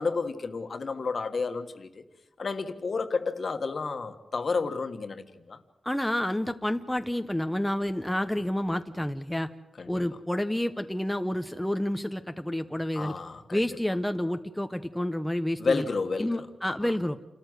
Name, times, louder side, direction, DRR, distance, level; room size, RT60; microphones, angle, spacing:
voice 1, 0.0-2.0 2.4-5.6 9.8-9.9 12.9-13.6 15.6-16.3 16.8-16.9, left 4 dB, 50° left, 1.5 m, -31 dB
voice 2, 5.8-9.5 9.9-13.1 13.5-15.9 16.2-17.2, left 1 dB, 5° left, 0.7 m, -29 dB
28.5 x 14.0 x 8.0 m
wide cardioid pair, 125°, 0 cm